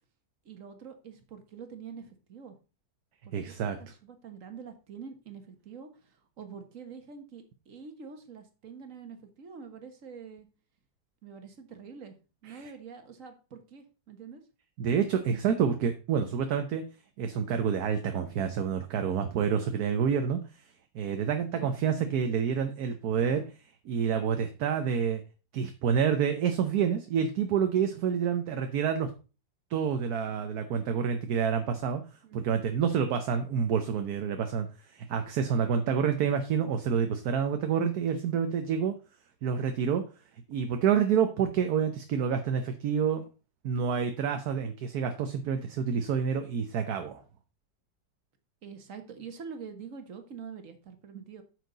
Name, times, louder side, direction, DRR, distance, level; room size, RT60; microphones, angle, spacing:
voice 1, 0.4-2.6 3.2-10.5 11.2-12.2 12.4-14.4 32.2-32.7 48.6-51.4, right 6 dB, 50° right, 7 dB, 1.7 m, -46 dB
voice 2, 3.3-3.8 12.5-12.6 14.8-16.8 17.2-20.4 20.9-23.5 23.8-25.2 25.5-29.1 29.7-32.0 32.3-38.9 39.4-40.0 40.5-43.2 43.6-47.2, right 7 dB, 65° right, 7 dB, 1.2 m, -28 dB
9.3 x 6.4 x 3.9 m, 0.33 s
omnidirectional pair, 1.9 m